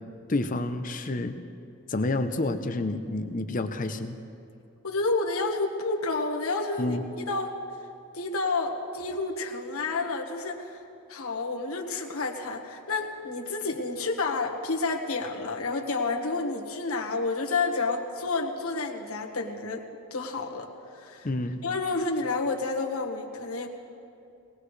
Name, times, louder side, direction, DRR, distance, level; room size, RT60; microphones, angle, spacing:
voice 1, 0.3-1.4 1.9-4.2 6.8-7.0 21.2-21.6, left 2 dB, 35° left, 8 dB, 0.7 m, -29 dB
voice 2, 4.8-7.5 8.1-10.8 11.1-19.8 20.1-21.3 21.6-23.7, left 3 dB, 80° left, 1 dB, 1.5 m, -30 dB
21.5 x 18.0 x 3.3 m, 2.6 s
head